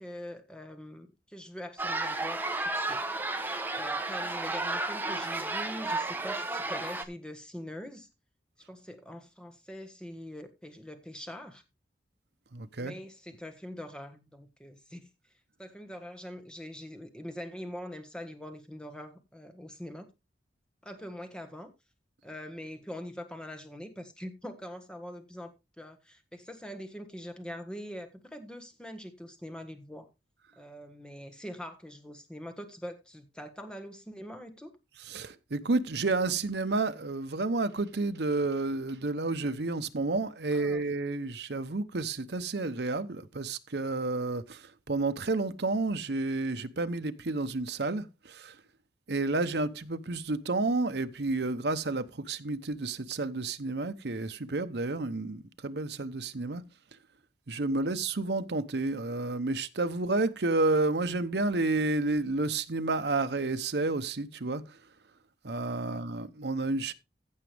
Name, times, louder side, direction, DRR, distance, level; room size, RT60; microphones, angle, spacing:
voice 1, 0.0-3.0 3.7-8.1 8.7-11.6 12.8-15.1 15.6-20.0 20.8-21.7 22.2-30.1 30.6-34.8 40.5-40.8 57.7-57.9 65.8-66.0, equal, 5° left, 1.5 m, -43 dB
sound 1, 1.8-7.0, right 2 dB, 10° right, 0.9 m, -32 dB
voice 2, 12.5-12.9 35.0-48.6 49.1-56.6 57.5-64.8 65.4-66.9, right 3 dB, 65° right, 0.8 m, -30 dB
15.5 x 6.2 x 3.4 m
head